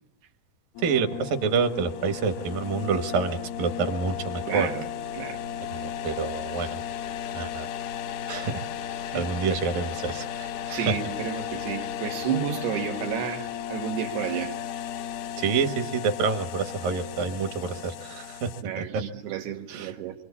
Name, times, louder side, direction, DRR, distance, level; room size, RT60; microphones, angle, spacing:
sound 1, 0.8-18.6, left 10 dB, 90° left, 3.2 m, -35 dB
voice 1, 0.8-4.7 5.7-6.8 7.3-7.7 8.3-8.6 9.1-11.0 15.4-19.0 19.7-19.9, right 5 dB, 65° right, 3.2 m, -28 dB
voice 2, 4.5-4.9 5.1-5.4 6.6-6.7 9.1-9.3 10.7-14.6 18.6-20.2, right 8 dB, 85° right, 3.6 m, -31 dB
26.5 x 25.5 x 8.4 m
omnidirectional pair, 4.5 m